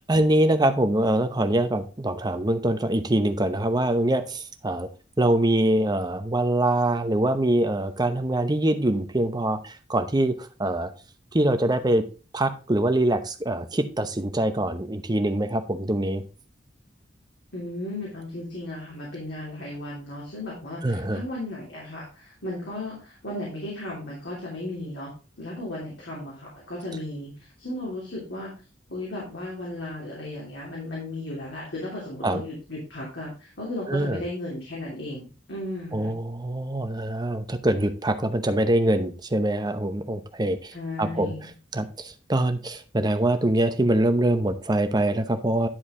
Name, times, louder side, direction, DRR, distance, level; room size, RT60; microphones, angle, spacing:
voice 1, 0.0-4.9 5.2-10.9 11.3-12.0 12.3-16.2 20.8-21.2 32.2-32.4 33.9-34.2 35.9-40.7 41.0-41.3 41.7-45.7, right 1 dB, 20° right, 8 dB, 0.8 m, -24 dB
voice 2, 17.5-27.3 27.6-28.5 28.9-36.1 40.7-41.5, left 1 dB, 70° left, -5 dB, 3.1 m, -35 dB
10.5 x 4.7 x 3.7 m, 0.34 s
head